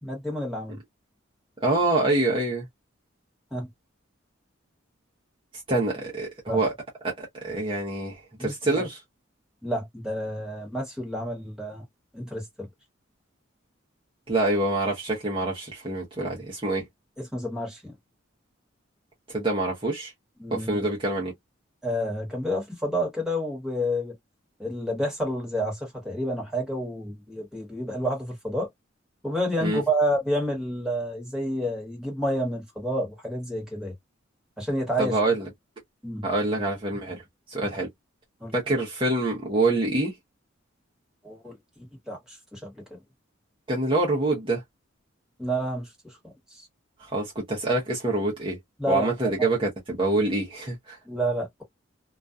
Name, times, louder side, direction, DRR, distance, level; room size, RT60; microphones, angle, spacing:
voice 1, 0.0-0.8 3.5-3.7 6.5-6.6 8.4-8.8 9.6-11.8 12.1-12.7 17.2-17.9 20.4-20.8 21.8-24.1 24.6-28.7 29.2-33.9 34.6-35.2 36.0-36.2 38.4-38.5 41.2-43.0 45.4-46.7 48.8-49.5 51.1-51.6, equal, 5° right, 1.1 m, -30 dB
voice 2, 1.6-2.7 5.7-6.7 7.0-9.0 14.3-16.8 19.3-20.1 20.5-21.3 29.6-29.8 35.0-35.5 36.2-37.2 37.5-37.9 38.5-40.1 43.7-44.6 47.0-48.6 48.9-51.0, right 2 dB, 25° right, 0.7 m, -26 dB
2.3 x 2.2 x 2.5 m
head